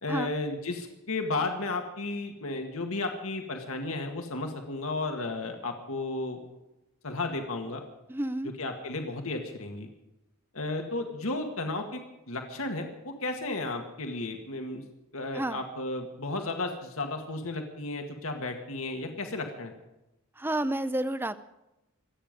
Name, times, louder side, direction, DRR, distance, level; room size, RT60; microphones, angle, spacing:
voice 1, 0.0-6.4 7.0-7.8 8.6-9.9 10.5-12.0 12.3-14.8 15.1-19.7, left 2 dB, 75° left, 4 dB, 1.9 m, -33 dB
voice 2, 8.1-8.5 15.3-15.6 20.4-21.4, right 1 dB, 10° right, 13 dB, 0.6 m, -30 dB
26.0 x 9.3 x 5.2 m, 0.94 s
head